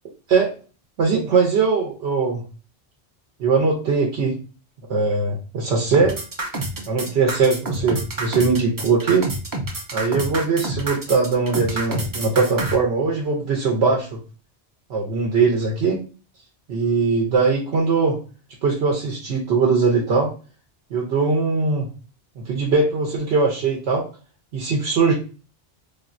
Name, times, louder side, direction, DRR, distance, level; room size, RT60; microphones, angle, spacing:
voice 1, 1.0-2.4 3.4-4.4 4.9-6.2 6.9-9.3 9.9-14.2 14.9-16.0 16.7-18.2 18.6-20.3 20.9-21.9 22.4-24.1 24.5-25.1, right 4 dB, 85° right, -1 dB, 0.9 m, -20 dB
sound 1, 5.9-12.8, right 2 dB, 35° right, 0.3 m, -28 dB
3.5 x 2.1 x 2.4 m, 0.35 s
omnidirectional pair, 1.1 m